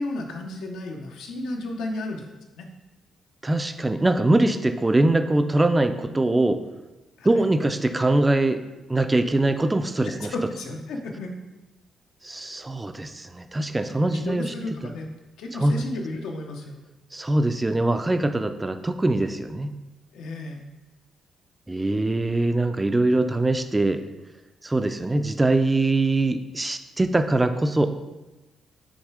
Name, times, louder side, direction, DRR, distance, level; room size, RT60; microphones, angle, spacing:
voice 1, 0.0-2.2 2.6-2.7 7.2-7.4 10.0-11.3 13.9-15.1 15.4-16.8 20.1-20.6, left 2 dB, 85° left, 2 dB, 0.8 m, -33 dB
voice 2, 3.4-6.6 7.2-8.6 8.9-10.3 12.2-14.5 15.6-15.7 17.1-19.7 21.7-24.0 24.6-27.9, right 2 dB, 15° right, 8 dB, 0.3 m, -22 dB
6.3 x 3.2 x 4.8 m, 1.1 s
cardioid pair, 140°, 0 cm